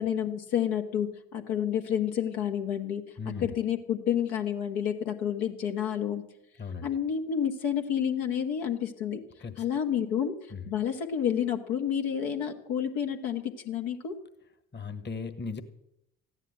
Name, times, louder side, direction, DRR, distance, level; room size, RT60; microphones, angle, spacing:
voice 1, 0.0-3.0 3.4-6.2 6.8-9.2 9.6-10.3 10.7-14.1, left 9 dB, 65° left, 3 dB, 1.6 m, -29 dB
voice 2, 3.2-3.5 6.6-6.9 9.4-9.6 10.5-10.7 14.7-15.6, left 5 dB, 25° left, 11 dB, 1.5 m, -37 dB
14.5 x 9.9 x 7.8 m, 0.81 s
figure-of-eight pair, 50°, 40 cm